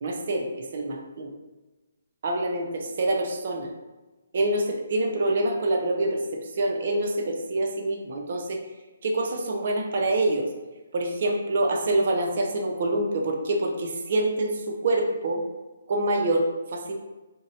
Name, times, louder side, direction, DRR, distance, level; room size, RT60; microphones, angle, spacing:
voice 1, 0.0-1.3 2.2-3.7 4.3-8.6 9.0-10.5 10.9-15.4 15.9-16.9, right 2 dB, 55° right, 2 dB, 0.4 m, -26 dB
2.5 x 2.0 x 2.6 m, 1.1 s
hypercardioid pair, 145°, 0 cm